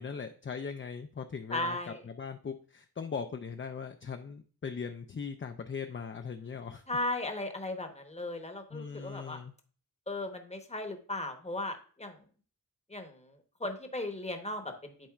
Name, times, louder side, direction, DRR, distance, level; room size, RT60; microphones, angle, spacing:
voice 1, 0.0-6.8 8.7-9.5, left 6 dB, 30° left, 6 dB, 0.4 m, -40 dB
voice 2, 1.5-2.0 6.9-9.4 10.1-12.2 12.9-14.9, left 2 dB, 15° left, 5 dB, 1.0 m, -36 dB
10.5 x 4.2 x 2.4 m, 0.41 s
wide cardioid pair, 115°, 39 cm